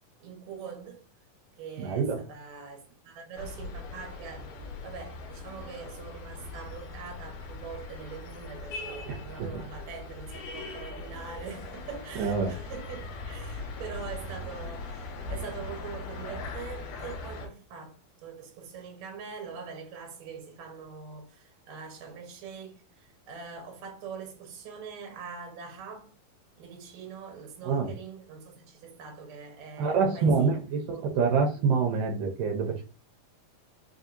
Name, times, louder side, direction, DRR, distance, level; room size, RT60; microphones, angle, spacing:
voice 1, 0.2-1.0 1.6-26.1 26.6-31.0, right 6 dB, 65° right, 2.2 m, -43 dB
voice 2, 1.8-2.2 9.1-9.5 12.2-12.6 27.6-27.9 29.8-32.8, right 5 dB, 80° right, 2.2 m, -26 dB
sound 1, 3.4-17.5, left 3 dB, 75° left, 2.4 m, -40 dB
5.4 x 2.7 x 2.5 m
omnidirectional pair, 4.0 m